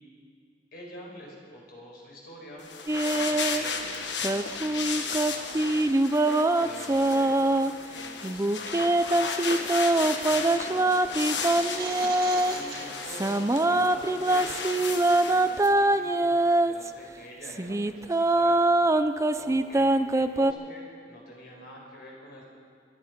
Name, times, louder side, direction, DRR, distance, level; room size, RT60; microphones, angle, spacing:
voice 1, 0.7-2.7 3.1-5.8 6.5-7.6 7.9-11.5 12.5-16.4 16.6-18.6 19.4-22.4, equal, 60° left, -2 dB, 4.9 m, -46 dB
sound 1, 2.6-15.7, left 5 dB, 80° left, 1.4 m, -35 dB
sound 2, 2.9-3.6 4.2-7.7 8.2-12.5 13.0-16.9 17.4-20.5, right 2 dB, 15° right, 0.5 m, -24 dB
sound 3, 11.4-13.1, right 4 dB, 60° right, 1.9 m, -38 dB
22.5 x 11.5 x 5.2 m, 2.3 s
head